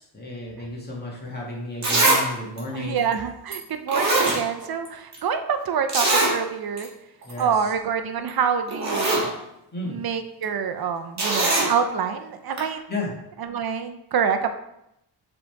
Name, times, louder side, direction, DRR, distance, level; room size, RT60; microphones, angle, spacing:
voice 1, 0.0-3.0 7.2-7.5 9.7-10.0 12.9-13.1, left 2 dB, 20° left, -3 dB, 2.0 m, -32 dB
Zipper (clothing), 1.3-1.4 1.8-2.2 2.6-2.7 3.5-3.6 3.9-4.9 5.1-5.2 5.9-6.3 6.8-6.9 7.2-7.4 8.3-8.4 8.7-9.3 11.2-11.7 12.6-12.7, right 2 dB, 35° right, 1.9 m, -21 dB
voice 2, 2.7-6.9 7.4-9.3 9.8-12.8 13.4-14.5, right 7 dB, 55° right, 7 dB, 0.7 m, -26 dB
7.1 x 4.0 x 3.5 m, 0.82 s
cardioid pair, 110°, 45 cm